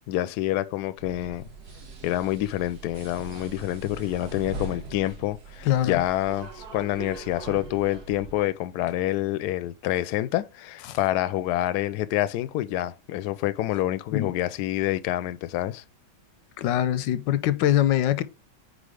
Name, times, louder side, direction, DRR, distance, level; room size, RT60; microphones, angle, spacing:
voice 1, 0.1-1.5 2.0-15.8, left 14 dB, 75° left, 1.1 m, -27 dB
sound 1, 1.0-8.3, right 3 dB, 60° right, 2.0 m, -41 dB
voice 2, 5.6-6.0 10.9-11.0 14.1-14.3 16.6-18.2, left 12 dB, 90° left, 1.3 m, -23 dB
5.0 x 4.3 x 4.9 m
omnidirectional pair, 1.9 m